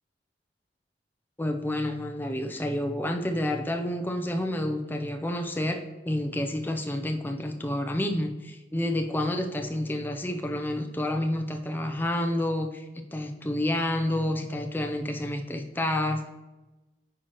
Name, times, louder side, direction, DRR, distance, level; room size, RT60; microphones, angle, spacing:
voice 1, 1.4-12.8 13.1-16.3, left 1 dB, 10° left, 4 dB, 0.5 m, -29 dB
9.6 x 4.4 x 3.0 m, 1.1 s
head